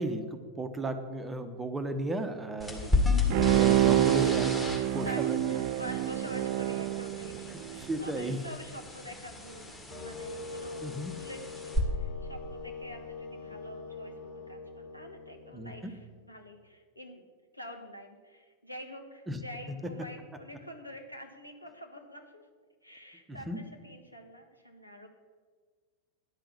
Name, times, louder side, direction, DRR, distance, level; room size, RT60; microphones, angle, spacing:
voice 1, 0.0-2.8 3.5-4.5 4.9-5.4 7.9-8.4 10.8-11.1 15.5-15.9 19.3-19.4 23.3-23.6, right 1 dB, 10° right, 8 dB, 1.0 m, -34 dB
voice 2, 2.6-3.3 4.8-17.3 17.5-22.5 22.8-25.1, equal, 90° left, 3 dB, 1.3 m, -47 dB
sound 1, 2.6-11.8, left 3 dB, 5° left, 2.0 m, -34 dB
Bowed string instrument, 3.3-7.9 8.3-8.4, right 13 dB, 45° right, 0.3 m, -27 dB
sound 2, 9.9-16.0, left 3 dB, 50° left, 3.1 m, -43 dB
10.5 x 5.9 x 8.3 m, 1.5 s
figure-of-eight pair, 90°, 0 cm